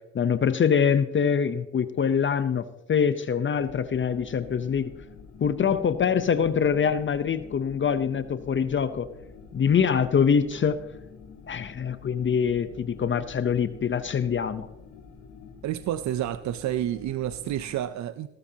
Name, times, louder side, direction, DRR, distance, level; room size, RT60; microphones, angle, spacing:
voice 1, 0.1-2.6 2.9-4.9 5.4-9.1 9.5-10.8 11.5-14.7, left 7 dB, 40° left, 12 dB, 0.8 m, -24 dB
sound 1, 3.5-17.8, left 5 dB, 80° left, 3.2 m, -47 dB
voice 2, 15.6-18.3, right 12 dB, 70° right, 13 dB, 0.6 m, -29 dB
17.5 x 13.0 x 2.8 m, 0.96 s
cardioid pair, 90°, 30 cm